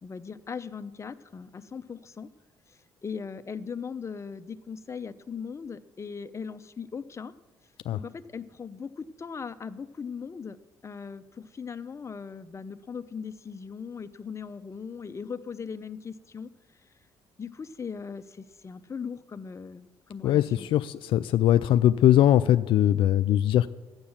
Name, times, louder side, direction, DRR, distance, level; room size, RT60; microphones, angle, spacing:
voice 1, 0.0-2.3 2.7-7.3 7.9-10.6 10.8-16.5 17.4-20.7, left 6 dB, 30° left, 11 dB, 0.7 m, -39 dB
voice 2, 20.7-23.7, left 12 dB, 75° left, 11 dB, 0.4 m, -21 dB
12.0 x 9.7 x 7.2 m, 1.2 s
cardioid pair, 75°, 9 cm